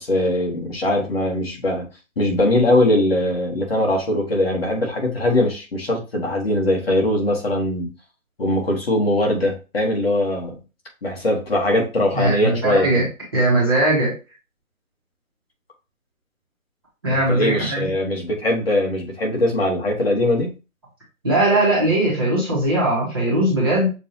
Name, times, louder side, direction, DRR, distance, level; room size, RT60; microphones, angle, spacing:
voice 1, 0.0-1.9 2.2-7.9 8.4-10.6 11.0-13.1 17.1-20.5, left 1 dB, 45° left, 0 dB, 1.5 m, -21 dB
voice 2, 12.1-13.0 13.3-14.1 17.0-17.9 21.2-23.9, right 1 dB, 15° right, -7 dB, 1.1 m, -19 dB
6.7 x 2.7 x 2.8 m, 0.30 s
hypercardioid pair, 175°, 41 cm